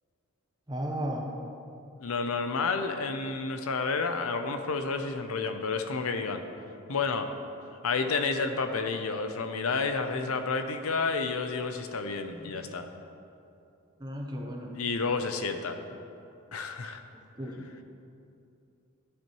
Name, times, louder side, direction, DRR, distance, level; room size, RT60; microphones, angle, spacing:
voice 1, 0.7-1.3 12.3-12.5 14.0-14.8 17.4-17.7, equal, 20° right, 0 dB, 0.8 m, -35 dB
voice 2, 2.0-6.4 6.9-7.3 7.8-12.9 14.7-15.8 16.5-17.0, left 4 dB, 75° left, 7 dB, 0.6 m, -30 dB
11.5 x 7.5 x 3.1 m, 2.7 s
head